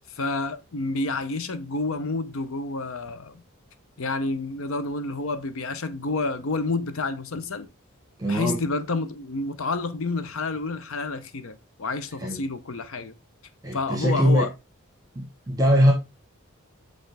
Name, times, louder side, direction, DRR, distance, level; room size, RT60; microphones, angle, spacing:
voice 1, 0.1-3.4 4.0-7.7 8.3-13.1 13.7-14.5, left 3 dB, 75° left, 0.7 m, -29 dB
voice 2, 8.2-8.6 12.2-12.4 13.6-14.5 15.2-15.9, equal, 15° right, 1.0 m, -21 dB
7.9 x 3.7 x 3.3 m
head